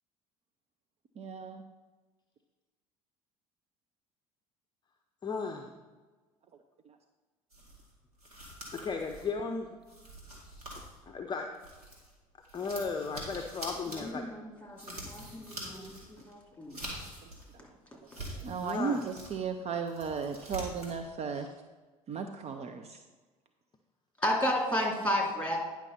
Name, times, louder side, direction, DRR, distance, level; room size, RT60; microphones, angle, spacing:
voice 1, 1.2-1.6 18.4-21.5 22.1-23.0, right 5 dB, 35° right, 6 dB, 0.6 m, -35 dB
voice 2, 5.2-5.7 8.7-9.8 10.4-10.6 11.1-11.5 12.5-14.3 18.6-19.0 21.3-21.5, left 4 dB, 25° left, 3 dB, 0.7 m, -35 dB
sound 1, 7.5-12.1 12.4-17.5 17.9-19.4 19.7-21.0, right 1 dB, 80° right, 2.1 m, -45 dB
voice 3, 13.9-16.8 24.2-25.6, equal, 5° left, -1 dB, 2.7 m, -32 dB
9.8 x 5.8 x 4.4 m, 1.3 s
figure-of-eight pair, 60°, 19 cm